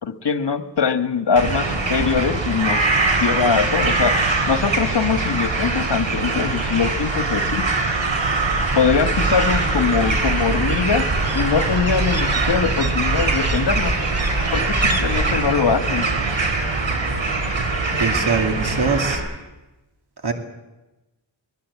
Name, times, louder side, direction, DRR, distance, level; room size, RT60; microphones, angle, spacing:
voice 1, 0.0-2.9 3.2-7.7 8.7-13.9 14.5-16.1, left 6 dB, 65° left, 10 dB, 1.6 m, -22 dB
sound 1, 1.4-19.2, right 3 dB, 75° right, 4.3 m, -22 dB
sound 2, 8.8-15.5, right 2 dB, 35° right, 2.2 m, -26 dB
voice 2, 18.0-19.2 20.2-20.3, right 4 dB, 60° right, 5 dB, 2.7 m, -22 dB
23.0 x 20.0 x 8.4 m, 1.0 s
wide cardioid pair, 65°, 45 cm